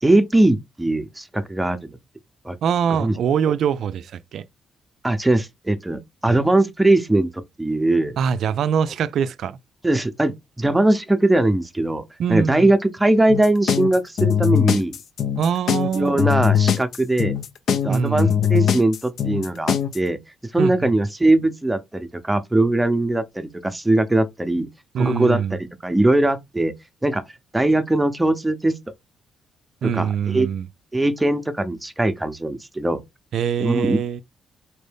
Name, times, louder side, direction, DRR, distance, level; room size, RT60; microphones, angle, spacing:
voice 1, 0.0-2.0 2.4-2.5 3.0-3.1 5.0-8.2 9.8-12.0 12.3-15.0 15.9-17.4 17.8-20.2 20.5-24.7 25.0-26.7 27.0-27.2 27.5-28.7 29.8-30.5 30.9-33.0 33.6-34.0, right 2 dB, 10° right, 0.7 m, -20 dB
voice 2, 2.6-4.4 6.3-6.4 8.2-9.6 12.2-12.7 15.4-16.2 17.9-18.4 20.6-20.9 24.9-25.6 29.8-30.7 33.3-34.2, right 7 dB, 70° right, 0.4 m, -23 dB
sound 1, 13.3-20.0, left 8 dB, 65° left, 0.6 m, -21 dB
4.4 x 2.6 x 3.4 m
cardioid pair, 90°, 0 cm